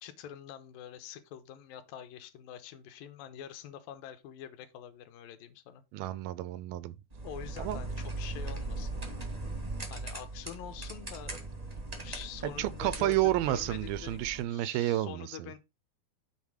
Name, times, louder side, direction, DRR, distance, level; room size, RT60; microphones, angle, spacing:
voice 1, 0.0-5.8 7.2-8.9 9.9-11.4 12.0-14.2 14.5-15.6, left 10 dB, 80° left, 2.4 m, -46 dB
voice 2, 5.9-6.9 7.6-7.8 12.6-15.5, right 15 dB, 80° right, 2.2 m, -30 dB
sound 1, 7.1-14.4, right 2 dB, 55° right, 0.4 m, -39 dB
7.3 x 3.8 x 6.3 m
omnidirectional pair, 4.3 m